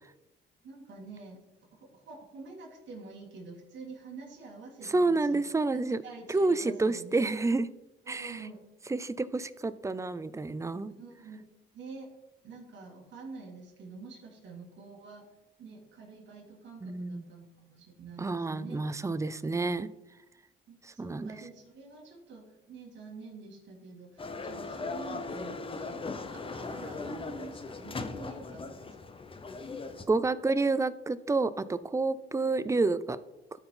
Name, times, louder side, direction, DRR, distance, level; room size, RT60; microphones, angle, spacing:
voice 1, 0.6-1.4 1.7-7.3 8.0-8.6 10.8-11.4 11.7-12.1 12.4-15.2 15.6-18.8 20.7-28.9, right 3 dB, 65° right, -2 dB, 2.2 m, -47 dB
voice 2, 4.8-6.0 6.3-7.7 8.1-8.5 8.9-10.9 16.8-17.2 18.2-19.9 20.8-21.3 30.1-33.2, right 3 dB, 15° right, 15 dB, 0.4 m, -29 dB
sound 1, 24.2-30.1, left 3 dB, 25° left, 0.8 m, -39 dB
12.5 x 4.4 x 3.8 m, 0.93 s
cardioid pair, 90°, 20 cm